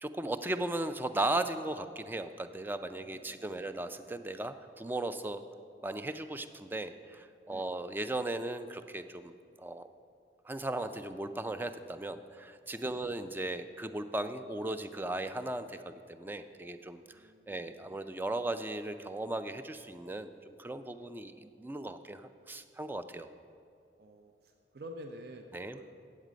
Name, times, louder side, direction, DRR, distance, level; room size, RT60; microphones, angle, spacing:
voice 1, 0.0-5.4 5.8-9.3 9.6-9.9 10.5-23.3 25.5-25.8, right 2 dB, 10° right, 10 dB, 0.3 m, -37 dB
voice 2, 3.0-3.6 7.5-7.7 17.1-17.8 24.0-25.9, equal, 60° right, 4 dB, 0.6 m, -50 dB
9.3 x 7.4 x 5.0 m, 2.4 s
head